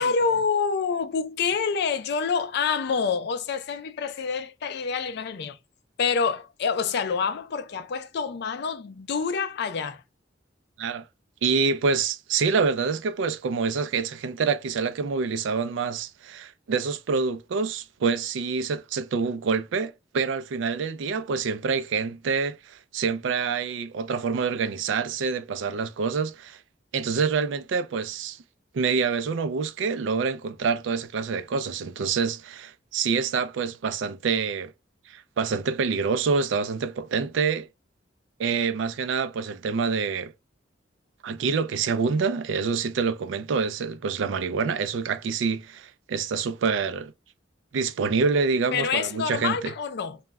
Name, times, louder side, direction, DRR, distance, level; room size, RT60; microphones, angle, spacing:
voice 1, 0.0-5.6 6.0-10.0 48.7-50.2, left 5 dB, 60° left, 0.4 m, -27 dB
voice 2, 11.4-26.6 26.9-28.4 28.7-34.7 35.1-37.7 38.4-40.3 41.2-47.1 47.7-49.6, right 5 dB, 80° right, 0.4 m, -26 dB
2.2 x 2.0 x 3.3 m
head